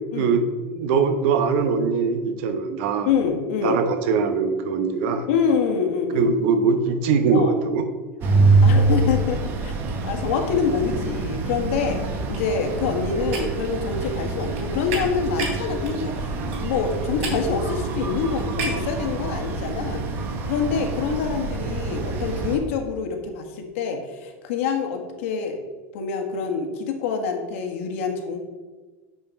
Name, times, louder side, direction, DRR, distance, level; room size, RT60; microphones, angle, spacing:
voice 1, 0.7-3.1 3.6-5.3 6.1-7.9, right 5 dB, 60° right, 8 dB, 1.0 m, -21 dB
voice 2, 3.0-3.8 5.3-6.3 7.3-7.6 8.6-9.7 10.0-16.3 16.6-20.0 20.4-25.6 25.9-28.4, left 6 dB, 85° left, 4 dB, 1.6 m, -26 dB
sound 1, 8.2-22.6, right 3 dB, 30° right, 1.0 m, -25 dB
sound 2, 12.3-18.9, right 3 dB, 80° right, 3.1 m, -35 dB
7.0 x 6.4 x 5.4 m, 1.3 s
cardioid pair, 175°, 7 cm